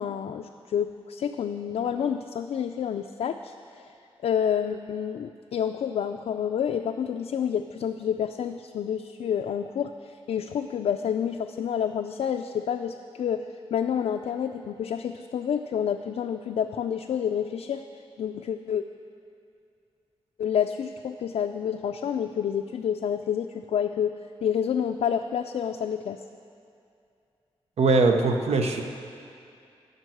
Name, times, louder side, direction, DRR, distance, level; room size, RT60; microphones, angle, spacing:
voice 1, 0.0-3.9 4.2-13.4 13.7-17.8 18.2-18.8 20.4-26.2, left 8 dB, 90° left, 5 dB, 0.4 m, -29 dB
voice 2, 27.8-28.8, right 3 dB, 85° right, 4 dB, 0.8 m, -21 dB
12.0 x 5.2 x 7.8 m, 2.5 s
cardioid pair, 80°, 10 cm